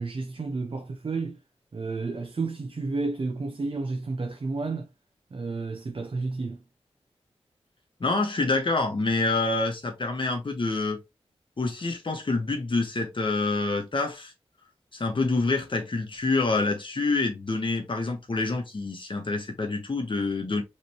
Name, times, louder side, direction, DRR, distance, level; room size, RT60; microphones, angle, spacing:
voice 1, 0.0-1.4 1.7-4.9 5.3-6.6, right 3 dB, 55° right, 0.7 m, -31 dB
voice 2, 8.0-11.0 11.6-14.3 14.9-20.6, left 3 dB, 50° left, 1.3 m, -27 dB
5.1 x 3.3 x 3.0 m
wide cardioid pair, 100°, 11 cm